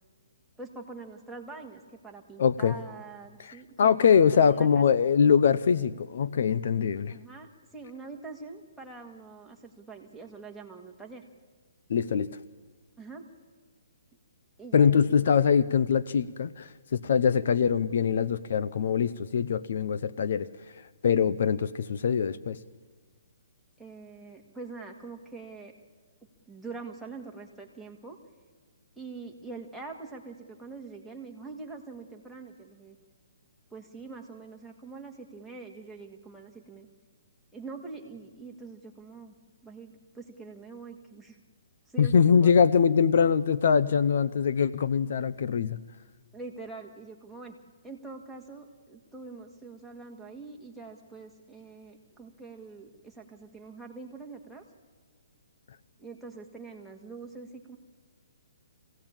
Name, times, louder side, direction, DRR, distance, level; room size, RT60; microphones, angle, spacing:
voice 1, 0.6-4.8 7.1-11.2 13.0-13.3 14.6-15.3 23.8-25.7 26.5-28.2 29.0-33.0 33.7-36.9 37.5-39.4 39.6-41.4 41.9-42.5 46.3-47.6 47.8-54.6 56.0-57.8, right 4 dB, ahead, -2 dB, 2.0 m, -44 dB
voice 2, 2.4-2.8 3.4-7.2 11.9-12.3 14.7-20.5 20.8-22.6 42.0-45.8, left 7 dB, 60° left, 15 dB, 0.7 m, -23 dB
24.0 x 16.5 x 8.9 m, 1.5 s
hypercardioid pair, 160°, 0 cm